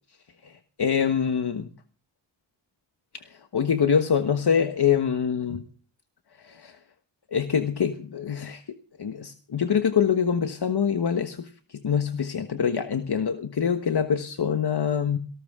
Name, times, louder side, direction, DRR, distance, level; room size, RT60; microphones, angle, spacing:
voice 1, 0.4-1.7 3.2-5.6 6.4-6.8 7.3-15.2, left 7 dB, 60° left, 8 dB, 1.3 m, -25 dB
19.5 x 18.5 x 3.7 m, 0.42 s
cardioid pair, 55°, 45 cm